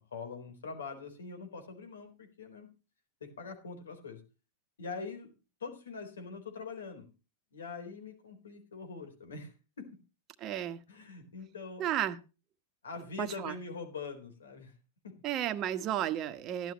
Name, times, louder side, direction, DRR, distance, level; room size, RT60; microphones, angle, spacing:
voice 1, 0.0-2.7 3.2-4.2 4.8-5.3 5.6-7.1 7.5-9.9 10.9-11.8 12.8-14.7 15.0-15.2, left 4 dB, 85° left, 7 dB, 4.1 m, -43 dB
voice 2, 10.4-10.8 11.8-12.2 13.2-13.5 15.2-16.7, right 11 dB, 40° right, 10 dB, 1.3 m, -33 dB
14.0 x 12.0 x 3.1 m, 0.31 s
hypercardioid pair, 105°, 0 cm